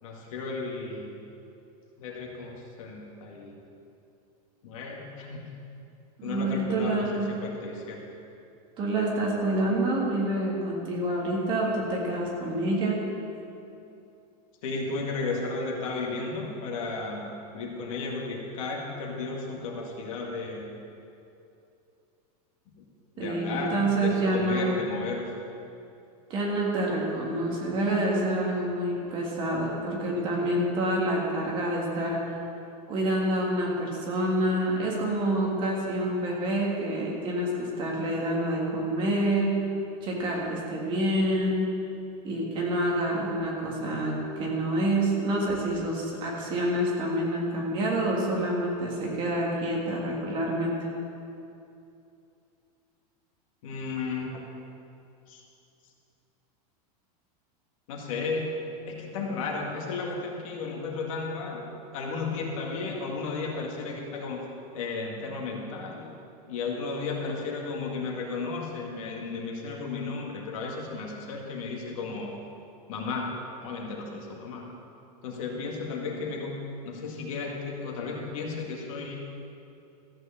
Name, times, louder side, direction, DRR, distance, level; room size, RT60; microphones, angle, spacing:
voice 1, 0.0-1.1 2.0-3.6 4.6-5.5 6.2-8.0 14.6-20.7 22.7-22.8 23.2-25.3 29.0-29.1 30.2-30.3 53.6-54.4 55.3-55.4 57.9-58.5 58.9-61.6 61.9-64.4 64.7-66.1 66.5-72.3 72.9-74.7 75.2-76.5 76.8-79.2, left 4 dB, 60° left, 0 dB, 2.0 m, -34 dB
voice 2, 6.2-7.4 8.8-13.0 23.2-24.8 26.3-32.2 32.9-37.5 37.8-39.5 40.0-41.7 42.2-50.8, right 1 dB, 25° right, -3 dB, 1.8 m, -27 dB
14.0 x 6.4 x 7.1 m, 2.7 s
supercardioid pair, 175°, 20 cm